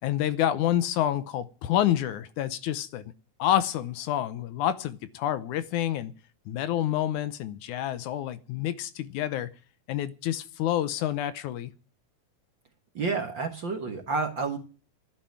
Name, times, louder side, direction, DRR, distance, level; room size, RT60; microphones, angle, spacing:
voice 1, 0.0-3.0 3.4-6.1 6.5-9.5 9.9-11.7, left 11 dB, 75° left, 2.2 m, -28 dB
voice 2, 12.9-14.6, right 4 dB, 50° right, 1.6 m, -29 dB
12.0 x 10.0 x 9.1 m
omnidirectional pair, 3.7 m